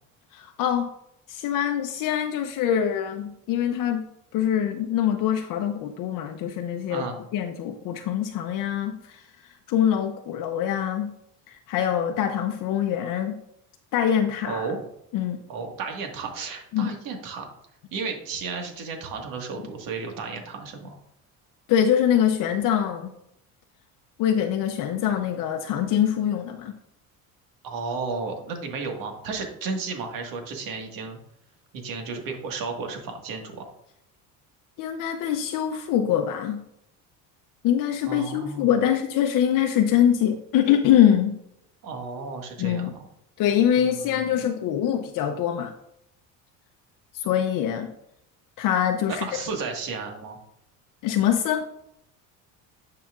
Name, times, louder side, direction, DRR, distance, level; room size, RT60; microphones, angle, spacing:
voice 1, 0.3-0.9 1.3-4.1 4.3-7.0 7.3-11.1 11.5-13.4 13.9-14.7 15.1-15.4 16.7-16.9 21.7-23.1 24.2-26.8 34.8-36.6 37.6-41.4 42.6-42.9 43.4-45.7 47.1-47.9 48.6-49.3 51.0-51.6, left 10 dB, 65° left, 5 dB, 0.7 m, -24 dB
voice 2, 14.5-14.8 15.5-17.5 17.9-21.0 27.6-31.2 31.7-33.7 38.1-38.7 41.8-42.9 43.7-44.3 49.1-50.4, right 4 dB, 65° right, 3 dB, 1.8 m, -33 dB
10.0 x 5.7 x 2.5 m, 0.76 s
cardioid pair, 115°, 36 cm